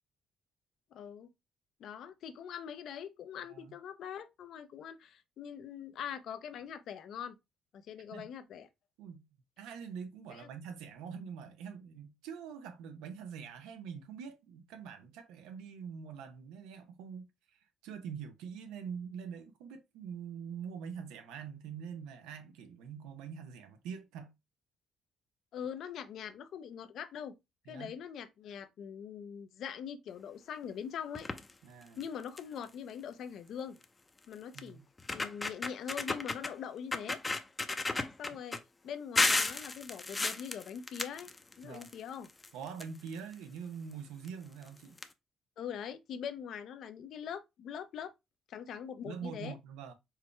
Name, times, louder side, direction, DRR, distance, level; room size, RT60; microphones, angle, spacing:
voice 1, 0.9-1.3 1.8-7.4 7.7-8.7 10.3-10.5 25.5-27.4 27.7-31.3 32.0-33.8 34.3-34.8 35.1-37.2 38.2-41.3 41.6-42.3 45.6-48.1 48.5-49.6, left 8 dB, 70° left, 0.7 m, -43 dB
voice 2, 9.6-24.3 27.7-28.0 31.6-32.0 34.5-34.9 41.6-41.9 42.5-45.0 49.0-49.9, right 7 dB, 90° right, 0.9 m, -44 dB
sound 1, 31.1-31.5 32.0-32.1 32.4-32.6 33.8-33.9 34.6-34.7 35.0-36.5 36.9-38.6 39.2-41.9 42.2-43.3 44.2-44.3 44.6-44.7 45.0-45.1, left 3 dB, 20° left, 0.6 m, -33 dB
4.7 x 3.4 x 3.3 m
supercardioid pair, 80°, 0 cm